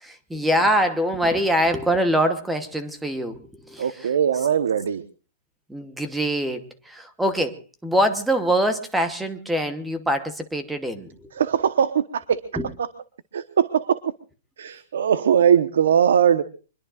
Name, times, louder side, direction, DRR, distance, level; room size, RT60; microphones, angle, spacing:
voice 1, 0.0-4.1 5.7-11.3 12.5-12.7, equal, 5° right, 8 dB, 1.1 m, -24 dB
voice 2, 3.8-5.0 11.3-12.4 12.8-12.9 13.3-14.0 14.6-16.4, right 8 dB, 75° right, 12 dB, 1.1 m, -20 dB
25.0 x 21.5 x 2.5 m, 0.36 s
hypercardioid pair, 175°, 0 cm